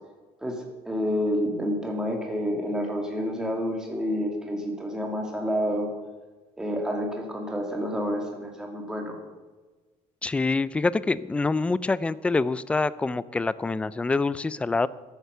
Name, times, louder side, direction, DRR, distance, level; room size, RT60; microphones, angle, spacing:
voice 1, 0.4-5.9 6.6-9.2, equal, 5° right, 1 dB, 2.4 m, -29 dB
voice 2, 10.2-14.9, left 3 dB, 10° left, 17 dB, 0.3 m, -26 dB
13.0 x 9.0 x 6.8 m, 1.3 s
cardioid pair, 150°, 12 cm